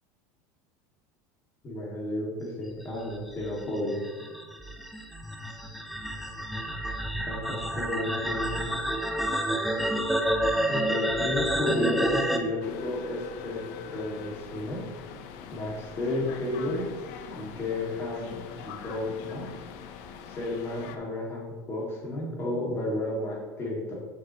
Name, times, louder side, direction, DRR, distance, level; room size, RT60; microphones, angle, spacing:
voice 1, 1.6-4.0 7.3-8.7 10.7-14.8 15.5-16.8 17.3-19.5 20.2-23.9, left 2 dB, 25° left, -2 dB, 2.1 m, -32 dB
sound 1, 3.1-12.4, right 1 dB, ahead, 0.6 m, -29 dB
sound 2, 12.6-21.0, left 7 dB, 65° left, 0.7 m, -43 dB
7.4 x 6.6 x 3.0 m, 1.5 s
supercardioid pair, 135°, 9 cm